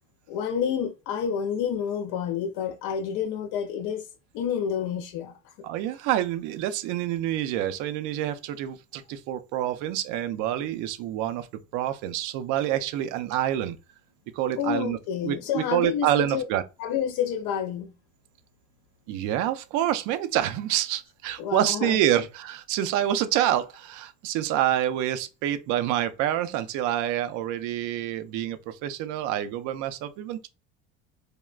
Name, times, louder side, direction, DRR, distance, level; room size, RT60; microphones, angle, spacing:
voice 1, 0.3-4.0 4.3-5.4 14.6-16.4 16.8-17.9 21.4-22.0, left 8 dB, 75° left, 0.5 m, -29 dB
voice 2, 5.6-11.5 11.7-13.8 14.3-15.0 15.2-16.6 19.1-30.5, right 12 dB, 75° right, 0.5 m, -27 dB
3.4 x 2.2 x 2.4 m
cardioid pair, 125°, 31 cm